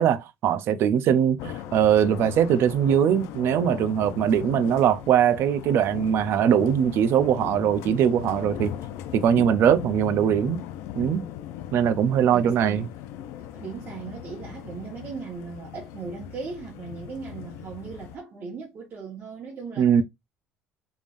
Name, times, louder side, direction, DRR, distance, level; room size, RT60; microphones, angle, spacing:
voice 1, 0.0-8.7 9.1-10.6 11.0-11.2 11.7-12.9 19.8-20.0, right 9 dB, 60° right, 0.5 m, -21 dB
sound 1, 1.4-18.2, left 11 dB, 85° left, 0.5 m, -38 dB
voice 2, 12.3-12.9 13.4-19.9, right 5 dB, 40° right, 1.3 m, -38 dB
3.5 x 3.5 x 2.5 m
cardioid pair, 120°, 5 cm